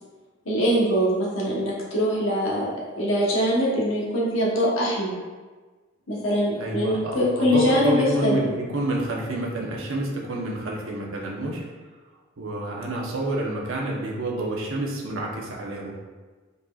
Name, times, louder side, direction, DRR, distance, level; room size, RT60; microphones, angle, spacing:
voice 1, 0.4-2.7 3.0-5.1 6.1-8.5, equal, 65° left, -5 dB, 1.1 m, -23 dB
voice 2, 6.6-11.6 12.4-16.0, right 1 dB, 75° right, -2 dB, 0.9 m, -28 dB
5.2 x 4.2 x 2.4 m, 1.3 s
head